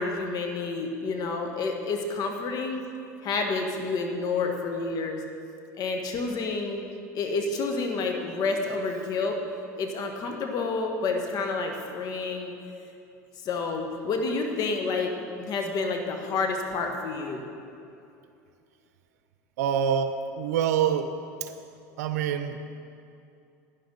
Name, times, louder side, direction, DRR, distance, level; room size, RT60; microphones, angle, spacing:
voice 1, 0.0-2.8 3.2-5.2 5.8-9.4 9.8-12.5 13.4-17.4, left 3 dB, 50° left, 3 dB, 1.5 m, -29 dB
voice 2, 19.6-21.1 21.4-21.5 22.0-22.6, right 8 dB, 85° right, 9 dB, 0.7 m, -26 dB
11.5 x 9.9 x 4.0 m, 2.6 s
supercardioid pair, 95°, 9 cm